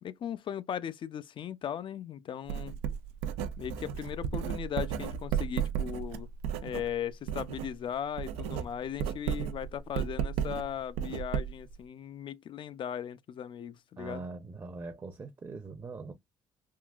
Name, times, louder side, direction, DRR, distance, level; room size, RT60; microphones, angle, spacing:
voice 1, 0.0-2.8 3.6-6.3 6.6-14.2, left 9 dB, 50° left, 0.4 m, -38 dB
Writing, 2.5-7.7 8.0-11.8, right 8 dB, 85° right, 0.4 m, -34 dB
voice 2, 14.0-16.1, right 3 dB, 30° right, 0.6 m, -42 dB
3.6 x 2.3 x 2.4 m
supercardioid pair, 65°, 11 cm